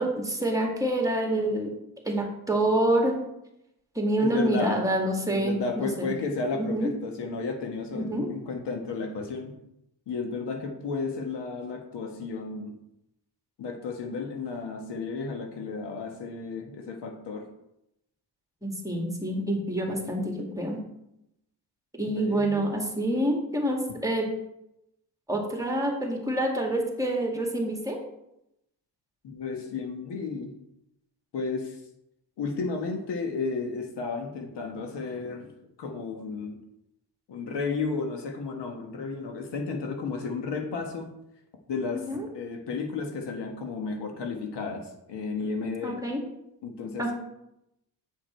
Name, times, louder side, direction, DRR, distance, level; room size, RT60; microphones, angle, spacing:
voice 1, 0.0-1.7 2.0-3.2 4.0-6.1 6.5-6.9 7.9-8.3 18.6-20.8 22.0-24.3 25.3-28.0 42.1-42.3 45.8-46.2 47.0-47.1, right 1 dB, 10° right, 1 dB, 2.1 m, -27 dB
voice 2, 4.2-4.8 5.3-9.6 10.1-12.8 13.6-17.5 22.0-22.7 29.2-30.5 31.3-31.8 32.4-35.5 35.8-36.6 37.3-41.1 41.7-46.0 46.6-47.1, left 4 dB, 70° left, 3 dB, 1.5 m, -33 dB
8.3 x 5.1 x 4.5 m, 0.83 s
cardioid pair, 75°, 43 cm